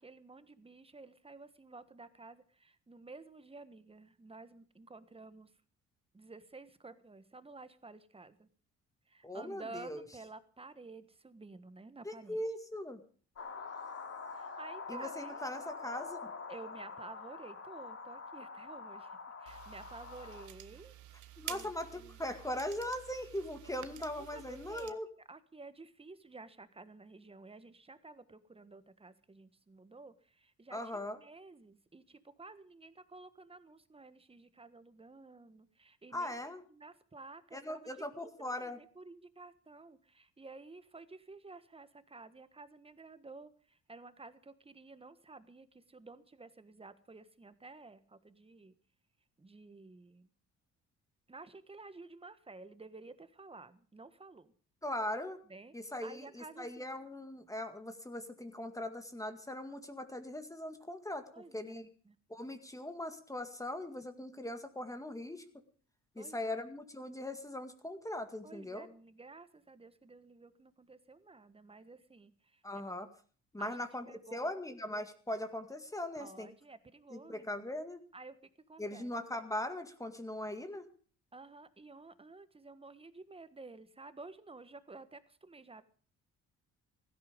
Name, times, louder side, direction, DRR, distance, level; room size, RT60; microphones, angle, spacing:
voice 1, 0.0-5.5 6.1-8.5 9.1-12.4 13.6-13.8 14.3-15.4 16.5-20.9 21.4-22.2 24.3-25.0 25.3-36.3 36.7-37.9 38.1-48.7 49.4-50.3 51.3-54.5 55.5-55.7 56.0-56.9 61.3-62.2 63.9-64.0 66.2-66.6 68.4-72.6 73.6-74.7 76.2-77.5 78.1-78.4 78.7-79.1 81.3-85.8, right 3 dB, 20° right, 13 dB, 1.4 m, -52 dB
voice 2, 9.2-10.0 12.0-13.0 14.9-16.3 21.4-25.1 30.7-31.2 36.1-36.6 37.5-38.8 54.8-55.4 55.7-61.3 61.5-61.9 62.3-65.4 66.2-68.9 72.6-73.1 73.5-74.1 74.3-76.5 77.1-78.0 78.8-80.9, left 1 dB, 10° left, 8 dB, 2.0 m, -40 dB
sound 1, 13.4-20.5, left 4 dB, 50° left, 3.5 m, -45 dB
sound 2, 19.5-24.9, right 12 dB, 75° right, 1.2 m, -50 dB
16.0 x 13.5 x 5.2 m, 0.42 s
cardioid pair, 90°, 30 cm